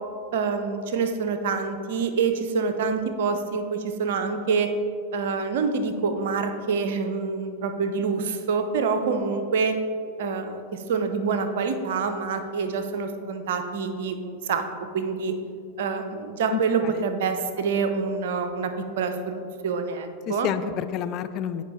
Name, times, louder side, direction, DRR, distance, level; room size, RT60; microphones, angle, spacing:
voice 1, 0.3-4.7 5.1-9.8 10.2-14.6 14.9-15.3 15.8-20.5, right 5 dB, 55° right, 8 dB, 0.7 m, -26 dB
voice 2, 16.5-17.1 20.3-21.6, left 9 dB, 35° left, 11 dB, 0.4 m, -30 dB
15.0 x 5.2 x 3.2 m, 2.3 s
figure-of-eight pair, 90°, 0 cm